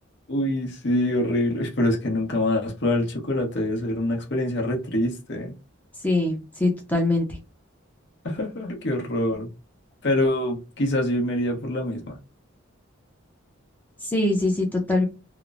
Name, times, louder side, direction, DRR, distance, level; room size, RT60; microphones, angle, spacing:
voice 1, 0.3-5.5 8.2-9.5 10.0-12.2, left 1 dB, 55° left, 0.8 m, -25 dB
voice 2, 6.0-7.3 14.0-15.1, left 2 dB, 10° left, 0.5 m, -23 dB
2.9 x 2.0 x 2.4 m
head